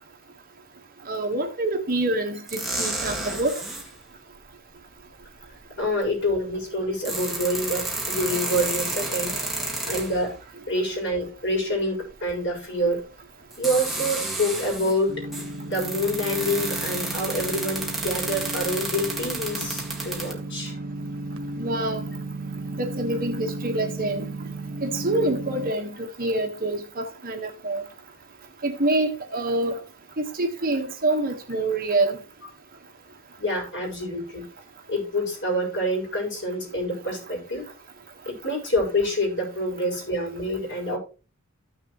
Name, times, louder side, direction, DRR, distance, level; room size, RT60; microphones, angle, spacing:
voice 1, 1.1-3.6 21.6-22.1 22.8-24.3 24.8-27.8 28.6-29.8 30.2-32.2, right 2 dB, 45° right, 1.5 m, -26 dB
sound 1, 2.5-3.9 5.4-5.5 6.8-10.3 12.5-12.6 13.5-15.0 15.3-20.3, right 2 dB, ahead, 1.9 m, -31 dB
voice 2, 5.8-9.4 9.9-10.3 10.7-13.0 13.6-15.2 15.6-20.8 33.4-34.5 34.9-37.7 38.3-41.0, equal, 60° left, 5.3 m, -27 dB
sound 2, 15.1-25.7, right 2 dB, 65° right, 1.6 m, -34 dB
14.5 x 6.5 x 3.1 m
head